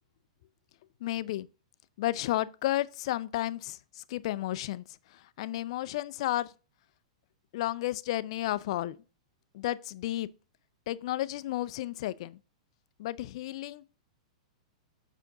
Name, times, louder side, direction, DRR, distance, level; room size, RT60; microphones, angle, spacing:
voice 1, 1.0-1.5 2.0-4.8 5.1-6.5 7.5-9.0 9.5-10.3 10.9-12.4 13.0-13.8, left 15 dB, 60° left, 0.4 m, -32 dB
6.4 x 5.0 x 3.7 m
hypercardioid pair, 135°, 4 cm